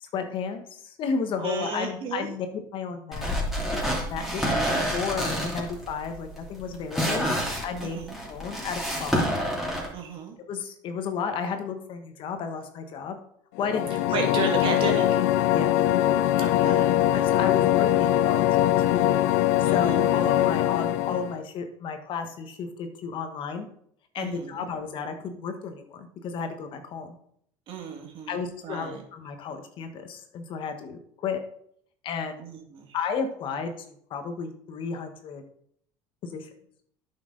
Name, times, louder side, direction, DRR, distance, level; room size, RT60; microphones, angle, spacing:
voice 1, 0.0-3.4 4.1-8.0 8.3-9.3 10.5-13.2 13.6-14.1 14.4-14.5 15.5-15.7 17.1-19.1 19.6-23.7 24.1-27.1 28.3-31.4 32.0-32.4 32.9-35.4 36.2-36.5, left 5 dB, 55° left, 7 dB, 1.3 m, -33 dB
voice 2, 1.4-2.3 7.8-8.2 9.9-10.4 14.1-15.2 16.4-17.0 19.7-20.1 24.2-24.7 27.7-29.0 32.4-33.0, right 4 dB, 60° right, 2 dB, 2.2 m, -33 dB
sound 1, 3.1-9.9, equal, ahead, 2.8 m, -28 dB
sound 2, 13.6-21.4, left 13 dB, 80° left, 0.5 m, -22 dB
9.5 x 5.9 x 4.0 m, 0.66 s
supercardioid pair, 95°, 10 cm